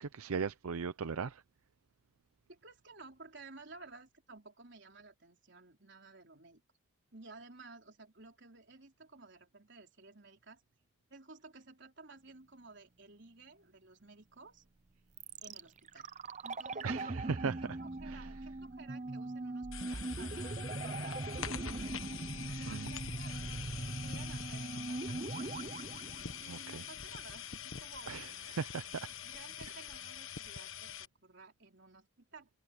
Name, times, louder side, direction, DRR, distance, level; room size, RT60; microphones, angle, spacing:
voice 1, 0.0-1.4 16.8-17.6 18.1-18.3 22.7-22.9 26.5-26.8 28.1-29.1, right 5 dB, 85° right, 0.6 m, -38 dB
voice 2, 2.5-6.6 7.1-10.6 11.1-14.6 15.4-16.1 16.4-22.0 22.3-25.7 26.4-28.2 29.0-32.5, right 3 dB, 55° right, 4.2 m, -55 dB
sound 1, 15.2-27.2 27.4-27.5, right 2 dB, 35° right, 0.6 m, -41 dB
sound 2, 19.7-31.1, left 8 dB, 70° left, 1.4 m, -45 dB
head